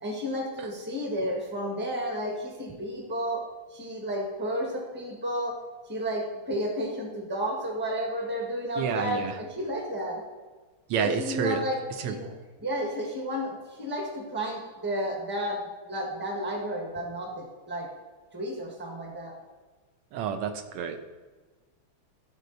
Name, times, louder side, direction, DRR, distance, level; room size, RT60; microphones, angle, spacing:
voice 1, 0.0-3.4 3.7-5.6 5.9-10.2 11.0-12.3 12.6-15.6 15.9-17.9 18.3-19.3, equal, 5° right, 0 dB, 1.0 m, -32 dB
voice 2, 8.8-9.4 10.9-11.6 12.0-12.1 20.1-21.0, right 7 dB, 85° right, 8 dB, 1.7 m, -29 dB
13.0 x 4.9 x 4.0 m, 1.3 s
omnidirectional pair, 2.4 m